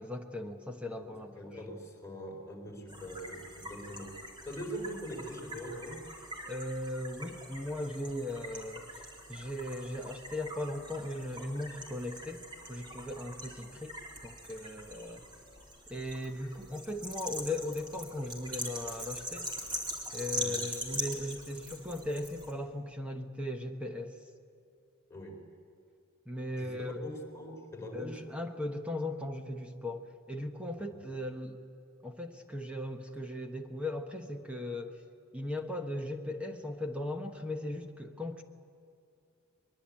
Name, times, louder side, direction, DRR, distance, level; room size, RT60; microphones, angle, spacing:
voice 1, 0.0-1.6 6.5-9.0 9.3-14.0 14.2-15.2 15.9-19.5 20.1-24.2 26.3-27.0 27.9-31.6 32.0-35.0 35.3-38.4, left 1 dB, 5° right, 4 dB, 1.1 m, -38 dB
voice 2, 1.0-6.0 20.3-20.6 25.1-25.4 26.6-28.2 30.8-31.0, equal, 15° left, 0 dB, 4.3 m, -43 dB
sound 1, 2.9-22.5, right 1 dB, 25° right, 3.8 m, -43 dB
22.5 x 22.5 x 8.7 m, 2.5 s
head